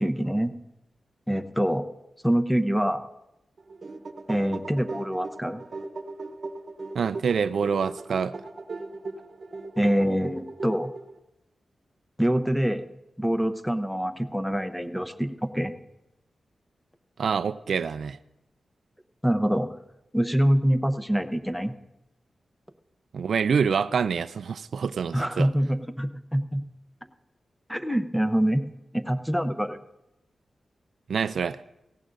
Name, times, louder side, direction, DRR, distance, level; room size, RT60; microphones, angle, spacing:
voice 1, 0.0-0.5 1.3-1.8 2.2-3.0 4.3-5.6 9.8-10.9 12.2-12.8 13.2-15.7 19.2-19.7 20.1-21.7 25.1-26.6 27.7-28.6 28.9-29.8, equal, ahead, 9 dB, 0.7 m, -25 dB
sound 1, 3.6-11.2, right 3 dB, 55° right, 0.9 m, -38 dB
voice 2, 6.9-8.3 17.2-18.2 23.1-25.5 31.1-31.6, right 6 dB, 80° right, 14 dB, 0.3 m, -26 dB
18.0 x 16.0 x 2.6 m, 0.92 s
wide cardioid pair, 105°, 0 cm